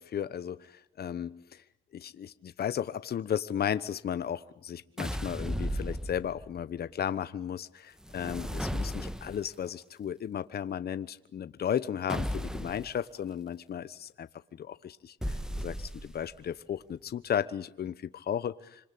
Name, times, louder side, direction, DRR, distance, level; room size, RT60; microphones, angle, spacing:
voice 1, 0.0-1.6 1.9-18.9, left 9 dB, 50° left, 13 dB, 1.1 m, -35 dB
sound 1, 5.0-6.6 8.0-9.5 12.1-12.9 15.2-16.3, equal, 5° right, 1.5 m, -35 dB
26.5 x 26.0 x 8.5 m, 0.77 s
cardioid pair, 90°, 20 cm